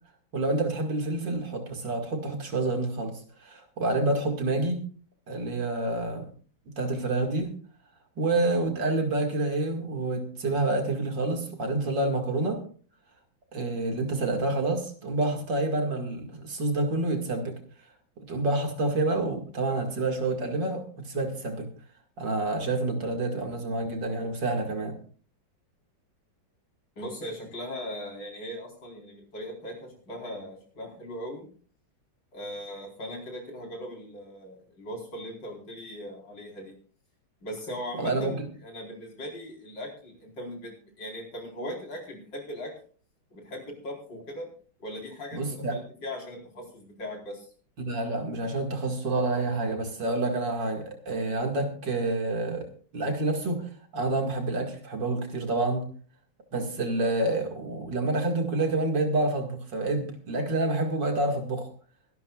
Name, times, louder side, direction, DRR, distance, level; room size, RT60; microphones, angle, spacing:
voice 1, 0.3-3.1 3.4-4.8 5.3-6.3 6.8-7.5 8.2-12.6 13.5-17.6 18.2-21.7 22.2-25.0 38.0-38.5 45.3-45.8 47.8-52.7 52.9-55.9 56.5-61.7, right 2 dB, 65° right, 3 dB, 2.7 m, -28 dB
voice 2, 27.0-31.5 32.3-36.7 37.4-40.7 41.0-42.7 43.3-44.5 44.8-47.5, equal, 65° left, 0 dB, 5.0 m, -39 dB
23.5 x 12.0 x 2.4 m, 0.42 s
omnidirectional pair, 2.1 m